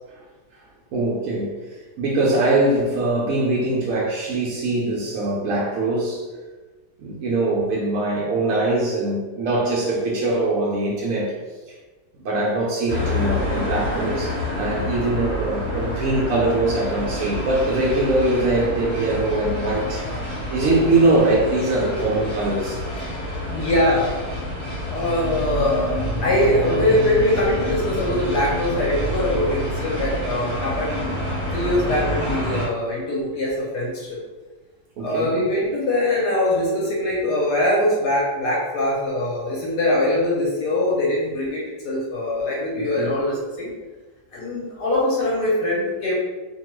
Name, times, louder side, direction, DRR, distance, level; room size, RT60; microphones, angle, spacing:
voice 1, 0.9-6.2 7.0-11.3 11.7-11.8 12.2-20.2 20.5-22.8 35.0-35.4 42.8-43.2, right 2 dB, 75° right, -4 dB, 0.8 m, -22 dB
sound 1, 12.9-32.7, left 1 dB, 45° left, 1.1 m, -28 dB
voice 2, 23.5-24.1 24.9-31.2 31.5-34.2 35.0-43.7 44.3-46.1, left 1 dB, 70° left, -5 dB, 1.1 m, -22 dB
2.9 x 2.2 x 2.9 m, 1.3 s
omnidirectional pair, 2.0 m